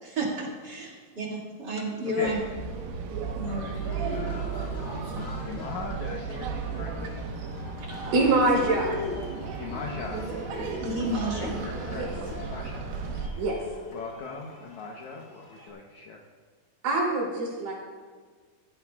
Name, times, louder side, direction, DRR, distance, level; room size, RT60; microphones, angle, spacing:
voice 1, 0.0-2.4 3.4-3.7 10.8-11.6, right 1 dB, 35° right, -4 dB, 2.1 m, -31 dB
voice 2, 2.0-2.4 3.4-3.8 4.1-4.6 5.4-7.2 9.6-10.2 10.5-10.8 11.4-12.9 13.2-13.4 13.9-16.2, left 3 dB, 80° left, 0 dB, 1.7 m, -40 dB
sound 1, 2.2-13.3, right 5 dB, 90° right, 3.2 m, -35 dB
Cheering, 3.7-15.7, left 3 dB, 45° left, 2.0 m, -41 dB
voice 3, 8.1-9.0 11.9-12.1 13.4-13.6 16.8-17.7, right 2 dB, 65° right, -4 dB, 4.6 m, -24 dB
16.0 x 14.0 x 2.3 m, 1.5 s
omnidirectional pair, 4.5 m